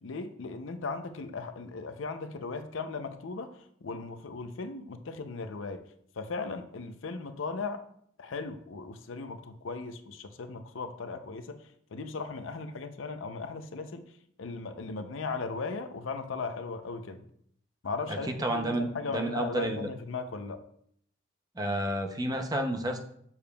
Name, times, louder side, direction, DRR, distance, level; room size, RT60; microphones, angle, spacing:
voice 1, 0.0-3.5 3.8-5.8 6.2-7.8 8.2-11.6 11.9-14.1 14.4-17.2 17.8-20.6, left 4 dB, 75° left, 9 dB, 0.5 m, -37 dB
voice 2, 18.1-19.9 21.6-23.0, right 1 dB, 20° right, 4 dB, 0.6 m, -31 dB
7.0 x 6.7 x 2.3 m, 0.68 s
head